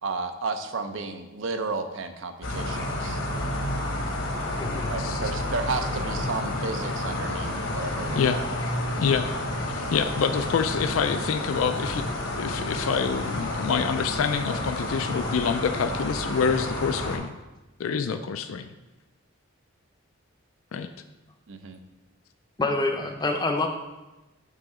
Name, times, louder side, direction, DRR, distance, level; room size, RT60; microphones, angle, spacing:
voice 1, 0.0-3.2 4.9-8.5 9.8-9.9 21.5-21.8, right 3 dB, 70° right, 8 dB, 0.6 m, -33 dB
sound 1, 2.4-17.2, left 1 dB, 75° left, 1.1 m, -30 dB
voice 2, 4.6-4.9 22.6-23.7, left 2 dB, 20° left, 4 dB, 0.5 m, -26 dB
voice 3, 9.0-9.3 9.7-12.0 12.4-17.3 17.8-18.7 20.7-20.9, left 6 dB, 90° left, 9 dB, 0.4 m, -26 dB
6.6 x 3.8 x 4.8 m, 1.1 s
head